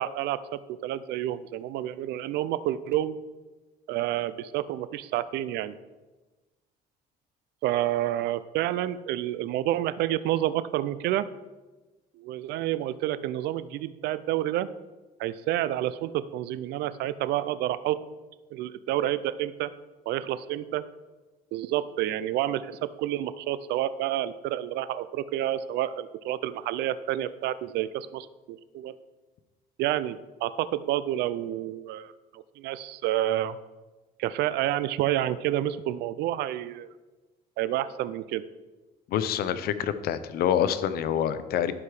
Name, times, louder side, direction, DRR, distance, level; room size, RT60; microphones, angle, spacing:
voice 1, 0.0-3.2 3.9-5.8 7.6-11.3 12.2-14.7 15.2-18.0 18.5-19.7 20.1-20.8 21.5-28.9 29.8-33.6 34.2-36.9 37.6-38.5, right 13 dB, 80° right, 15 dB, 0.4 m, -29 dB
voice 2, 39.1-41.7, left 9 dB, 65° left, 12 dB, 0.6 m, -26 dB
11.5 x 4.8 x 4.8 m, 1.2 s
cardioid pair, 110°, 17 cm